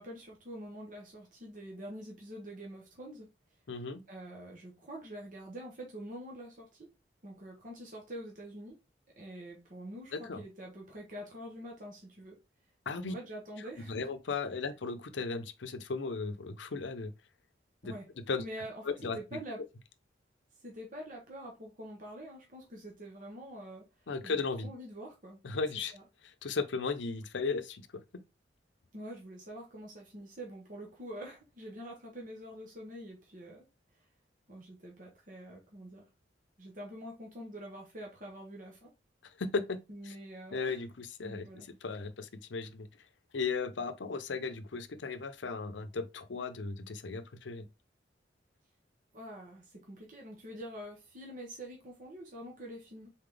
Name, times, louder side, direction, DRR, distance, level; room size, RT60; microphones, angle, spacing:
voice 1, 0.0-3.3 4.1-6.9 7.2-8.8 9.2-12.4 13.0-14.1 17.8-18.1 18.4-18.8 19.1-19.6 20.6-25.4 25.7-26.0 28.9-33.6 34.5-36.1 36.6-38.9 39.9-40.8 41.2-41.7 49.1-53.1, equal, 45° right, 1.2 m, -46 dB
voice 2, 3.7-4.0 10.1-10.4 12.9-13.1 13.9-17.1 17.8-17.9 18.3-18.4 18.8-19.4 24.1-24.7 25.4-25.9 26.2-28.0 39.4-39.8 40.1-40.2 40.5-42.9 43.3-47.7, left 4 dB, 80° left, 0.6 m, -36 dB
4.1 x 3.8 x 3.4 m
head